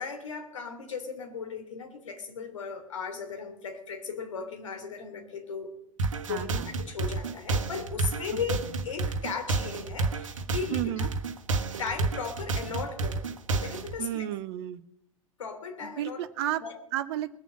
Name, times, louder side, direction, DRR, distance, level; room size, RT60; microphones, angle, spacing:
voice 1, 0.0-5.7 6.2-11.1 11.8-14.2 15.4-16.2 16.6-16.7, left 5 dB, 65° left, 5 dB, 3.2 m, -37 dB
sound 1, 6.0-13.9, right 3 dB, 70° right, 1.3 m, -30 dB
voice 2, 6.3-6.7 10.7-11.1 14.0-14.8 15.8-16.6 16.9-17.3, right 13 dB, 50° right, 11 dB, 0.9 m, -32 dB
21.0 x 7.1 x 7.4 m, 0.75 s
figure-of-eight pair, 90°, 17 cm